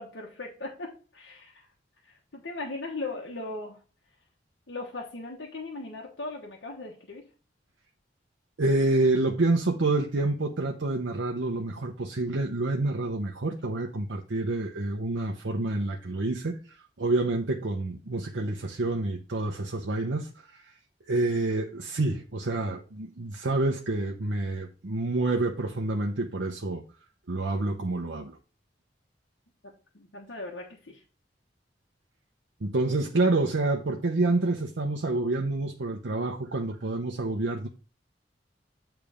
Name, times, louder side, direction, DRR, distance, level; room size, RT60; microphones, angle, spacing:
voice 1, 0.0-1.6 2.1-3.8 4.7-7.3 29.6-31.0, left 2 dB, 85° left, 1.3 m, -38 dB
voice 2, 8.6-20.7 21.1-26.8 27.3-28.4 32.6-37.7, right 2 dB, 80° right, 0.8 m, -28 dB
8.9 x 3.4 x 4.9 m
head